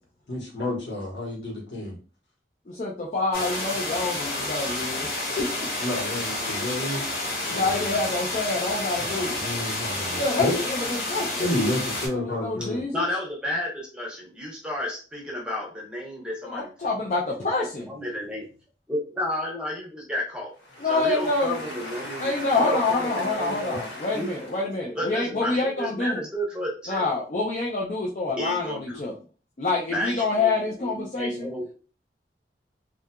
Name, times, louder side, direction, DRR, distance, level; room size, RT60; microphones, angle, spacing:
voice 1, 0.3-2.0 5.8-7.0 7.4-7.9 9.1-10.6 11.4-12.8 20.7-24.4, left 1 dB, 85° left, -2 dB, 1.1 m, -31 dB
voice 2, 2.7-5.1 5.4-5.7 7.5-9.4 10.1-11.4 12.1-13.1 16.4-18.0 20.8-21.6 22.2-26.2 26.9-29.1 29.6-31.5, left 3 dB, 40° left, -4 dB, 0.4 m, -27 dB
sound 1, 3.3-12.1, left 2 dB, 55° left, 1.0 m, -30 dB
voice 3, 12.9-17.1 17.9-18.4 18.9-20.5 20.9-23.8 24.1-24.3 25.0-27.1 28.4-29.0 29.9-30.5 30.8-31.7, left 1 dB, 5° right, -3 dB, 0.7 m, -32 dB
2.7 x 2.3 x 2.2 m, 0.36 s
head